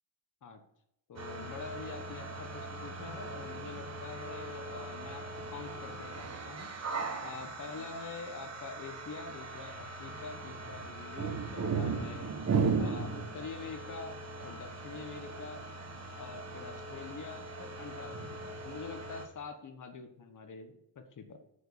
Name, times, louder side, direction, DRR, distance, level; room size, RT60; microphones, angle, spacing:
voice 1, 1.1-6.7 7.2-12.3 12.8-14.2 14.4-15.7 16.1-21.4, left 4 dB, 40° left, 6 dB, 1.3 m, -45 dB
sound 1, 1.2-19.3, right 4 dB, 35° right, 1.2 m, -38 dB
8.6 x 5.4 x 6.9 m, 0.79 s
wide cardioid pair, 160°, 46 cm